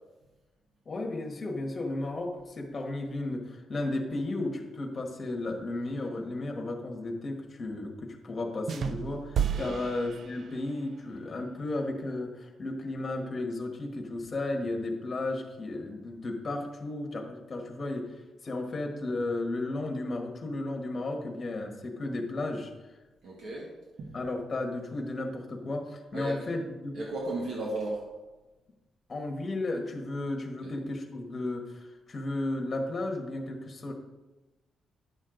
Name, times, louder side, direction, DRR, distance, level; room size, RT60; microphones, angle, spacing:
voice 1, 0.8-18.1 18.4-22.7 24.1-27.0 29.1-33.9, left 2 dB, 30° left, 2 dB, 1.3 m, -34 dB
sound 1, 8.7-10.9, right 7 dB, 50° right, 0.4 m, -32 dB
voice 2, 23.2-23.7 24.0-24.1 26.1-26.4 26.9-28.0 30.6-30.7, right 2 dB, 65° right, -3 dB, 1.6 m, -34 dB
9.9 x 6.4 x 3.8 m, 1.1 s
cardioid pair, 150°, 0 cm